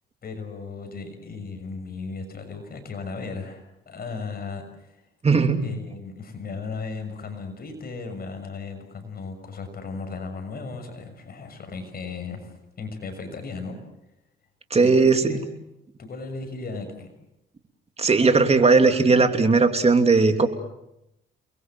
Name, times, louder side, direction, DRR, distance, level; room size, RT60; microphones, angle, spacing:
voice 1, 0.2-5.1 5.6-13.8 14.8-15.5 16.0-17.1, left 4 dB, 50° left, 6 dB, 6.5 m, -36 dB
voice 2, 5.2-5.6 14.7-15.4 18.0-20.5, right 4 dB, 30° right, 6 dB, 3.0 m, -18 dB
30.0 x 21.5 x 7.7 m, 0.88 s
cardioid pair, 90°, 20 cm